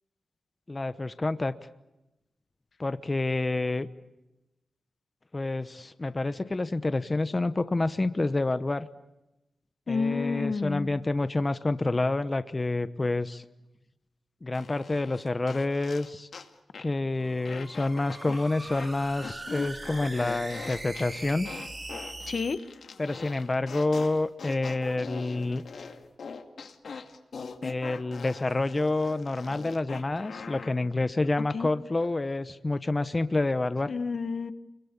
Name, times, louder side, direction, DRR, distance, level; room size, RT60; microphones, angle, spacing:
voice 1, 0.7-1.5 2.8-3.9 5.3-8.9 9.9-13.4 14.4-16.3 16.8-21.5 23.0-25.6 27.6-33.9, left 2 dB, 25° left, 12 dB, 0.9 m, -28 dB
voice 2, 9.9-10.9 22.3-22.6 31.5-31.7 33.9-34.5, left 4 dB, 50° left, 12 dB, 1.5 m, -29 dB
sound 1, 14.5-16.5 16.7-17.0 17.4-18.9 19.2-30.7, left 5 dB, 65° left, 2.3 m, -42 dB
sound 2, 17.1-22.5, right 2 dB, 25° right, 4.2 m, -41 dB
29.5 x 22.5 x 8.4 m, 0.93 s
wide cardioid pair, 145°, 0 cm